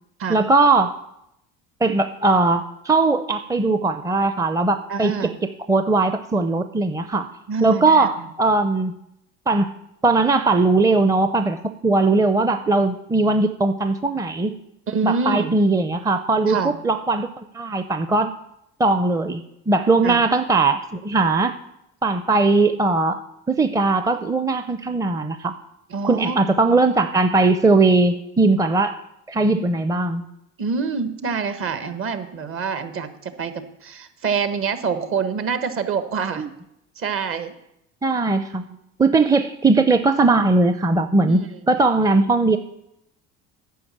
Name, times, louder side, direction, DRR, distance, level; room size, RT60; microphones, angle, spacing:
voice 1, 0.3-1.0 1.8-5.1 5.7-7.3 7.6-9.0 9.5-9.7 10.0-11.6 11.8-14.5 15.0-17.3 17.5-18.3 18.8-21.5 22.0-23.2 23.5-25.5 26.0-29.0 29.3-30.2 36.4-36.5 38.0-38.6 39.0-42.6, right 3 dB, 10° right, 9 dB, 0.6 m, -19 dB
voice 2, 4.9-5.4 7.5-8.1 14.9-15.6 16.5-16.7 20.0-20.2 25.9-26.5 30.6-36.4 37.0-37.5 41.2-41.6, right 5 dB, 45° right, 10 dB, 1.4 m, -26 dB
10.0 x 6.2 x 8.6 m, 0.80 s
supercardioid pair, 95°, 29 cm